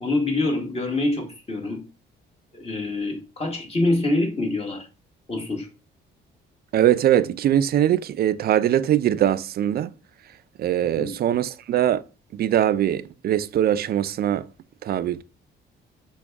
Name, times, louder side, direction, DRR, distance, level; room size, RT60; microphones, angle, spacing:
voice 1, 0.0-1.8 2.5-4.9 5.3-5.7 11.0-11.1, left 2 dB, 30° left, 1.4 m, -25 dB
voice 2, 6.7-9.9 10.6-12.0 12.3-14.5 14.8-15.2, right 11 dB, 50° right, 0.4 m, -21 dB
6.0 x 2.3 x 3.4 m
cardioid pair, 90°, 20 cm